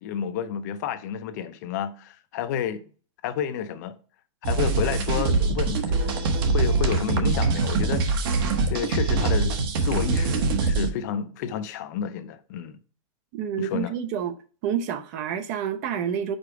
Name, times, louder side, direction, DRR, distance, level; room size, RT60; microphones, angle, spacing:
voice 1, 0.0-2.8 3.2-4.0 4.4-8.2 8.7-12.8 13.6-13.9, left 8 dB, 35° left, 0.5 m, -30 dB
sound 1, 4.4-10.9, right 3 dB, 45° right, 1.0 m, -23 dB
voice 2, 13.3-14.4 14.6-16.4, right 8 dB, 30° right, 0.5 m, -28 dB
5.1 x 4.8 x 4.7 m
supercardioid pair, 175°, 17 cm